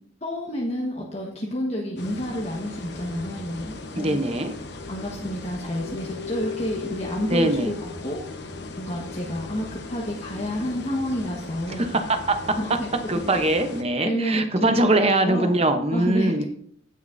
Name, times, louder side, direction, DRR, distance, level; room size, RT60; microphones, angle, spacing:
voice 1, 0.2-4.3 4.9-8.2 8.8-11.8 12.6-12.9 13.3-13.5 14.0-14.7 15.1-15.5 15.9-16.4, equal, 30° left, -3 dB, 1.3 m, -29 dB
sound 1, 2.0-13.8, left 2 dB, 55° left, 1.1 m, -38 dB
voice 2, 3.9-4.5 7.3-7.7 11.8-12.6 13.1-16.4, right 2 dB, 30° right, 7 dB, 0.8 m, -22 dB
sound 2, 4.7-10.3, left 9 dB, 85° left, 4.0 m, -40 dB
16.5 x 6.3 x 2.6 m, 0.64 s
head